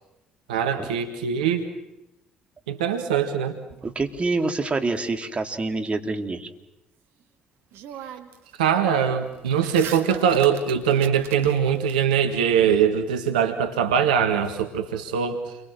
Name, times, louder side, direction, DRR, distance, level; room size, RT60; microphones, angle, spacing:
voice 1, 0.5-1.7 2.7-3.6 8.6-15.6, right 8 dB, 80° right, 7 dB, 1.6 m, -22 dB
sound 1, 3.7-5.0 7.2-7.3 7.7-8.5 8.8-12.0, right 9 dB, 60° right, 2.0 m, -41 dB
voice 2, 3.8-6.5, right 3 dB, 30° right, 5 dB, 2.9 m, -26 dB
29.5 x 24.5 x 7.5 m, 0.95 s
figure-of-eight pair, 50°, 4 cm